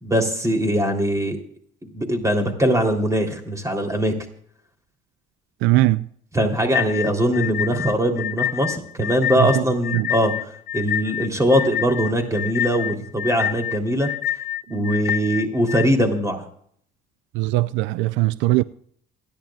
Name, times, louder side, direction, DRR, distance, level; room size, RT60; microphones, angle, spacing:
voice 1, 0.0-1.4 1.8-4.1 6.3-14.1 14.7-16.4, equal, 15° right, 3.5 m, -21 dB
voice 2, 5.6-6.1 9.4-9.6 9.9-10.1 14.7-14.9 17.3-18.6, right 18 dB, 85° right, 0.5 m, -20 dB
sound 1, 6.7-15.9, left 11 dB, 60° left, 0.7 m, -27 dB
28.0 x 10.5 x 2.5 m
cardioid pair, 90°, 19 cm